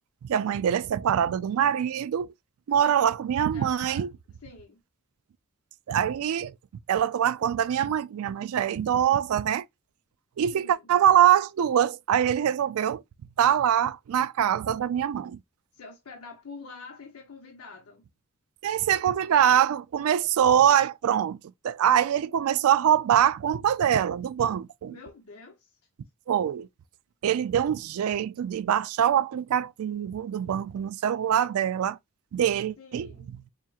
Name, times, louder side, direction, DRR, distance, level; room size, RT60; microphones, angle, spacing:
voice 1, 0.2-2.3 2.7-4.1 5.9-6.5 6.9-9.6 10.4-13.0 13.4-15.4 18.6-21.4 21.6-25.0 26.3-26.7 27.2-32.0 32.3-33.1, right 9 dB, 70° right, 0.3 m, -24 dB
voice 2, 2.8-3.2 3.5-4.1 4.4-4.8 10.5-10.9 15.7-18.0 24.9-25.8 32.8-33.3, left 4 dB, 80° left, 0.8 m, -46 dB
4.6 x 2.9 x 2.3 m
head